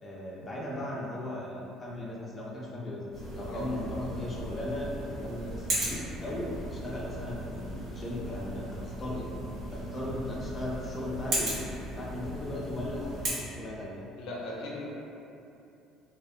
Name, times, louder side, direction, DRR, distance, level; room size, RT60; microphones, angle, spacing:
voice 1, 0.0-3.0 3.3-9.3 9.7-14.1, left 1 dB, 20° left, -5 dB, 0.4 m, -37 dB
sound 1, 3.1-13.3, right 1 dB, 50° right, 0.8 m, -37 dB
voice 2, 14.2-14.9, left 1 dB, 80° left, -4 dB, 0.5 m, -38 dB
2.6 x 2.1 x 2.3 m, 2.8 s
cardioid pair, 135°, 0 cm